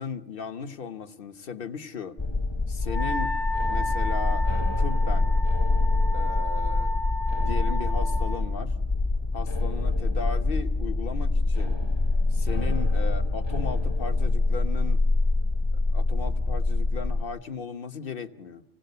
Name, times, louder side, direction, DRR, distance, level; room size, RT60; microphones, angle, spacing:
voice 1, 0.0-2.2 2.7-3.4 3.7-5.4 6.1-7.0 7.4-8.7 9.3-11.8 12.3-15.0 15.7-18.6, left 5 dB, 55° left, 8 dB, 1.2 m, -36 dB
sound 1, 2.2-17.2, left 2 dB, 25° left, 1.0 m, -25 dB
Wind instrument woodwind instrument, 2.9-8.4, left 1 dB, 80° left, 1.5 m, -33 dB
27.5 x 17.5 x 6.7 m, 0.82 s
omnidirectional pair, 1.2 m